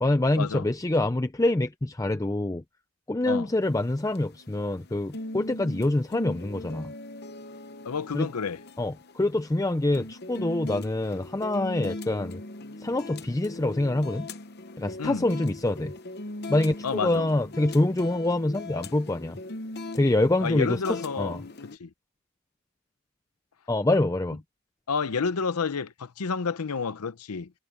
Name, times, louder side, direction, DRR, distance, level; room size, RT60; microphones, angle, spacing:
voice 1, 0.0-2.6 3.1-6.9 8.1-8.3 8.8-12.4 12.8-14.3 14.8-15.9 16.5-19.4 19.9-21.4 23.7-24.4, left 2 dB, 15° left, 0.5 m, -26 dB
sound 1, 3.6-21.8, left 2 dB, 45° left, 0.9 m, -40 dB
voice 2, 7.8-8.6 15.0-15.2 16.8-17.2 20.4-21.4 21.7-21.9 24.9-27.5, left 5 dB, 90° left, 0.7 m, -30 dB
head